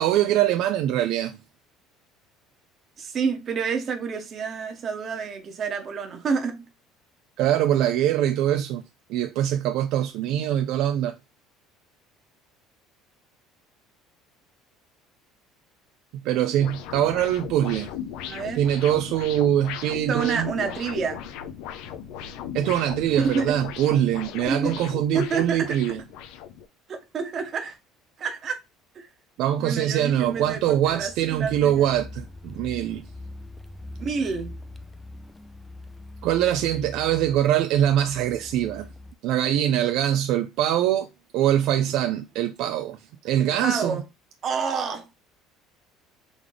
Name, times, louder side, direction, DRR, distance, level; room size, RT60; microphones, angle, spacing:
voice 1, 0.0-1.4 7.4-8.8 9.1-11.1 16.2-17.9 18.5-20.5 22.5-26.0 29.4-33.1 36.2-38.9 39.2-41.1 41.3-43.0 43.2-44.0, right 11 dB, 65° right, 0.4 m, -23 dB
voice 2, 3.0-6.6 18.2-18.6 20.1-21.2 23.2-23.6 24.5-24.9 25.1-25.8 26.9-27.8 28.2-28.6 28.9-29.1 29.6-31.9 34.0-34.6 43.4-44.0 44.4-45.0, right 5 dB, 35° right, 1.0 m, -29 dB
sound 1, 16.6-26.6, left 9 dB, 75° left, 0.6 m, -37 dB
Car, 29.8-39.1, left 2 dB, 10° left, 0.3 m, -43 dB
3.9 x 3.2 x 3.2 m
cardioid pair, 145°, 0 cm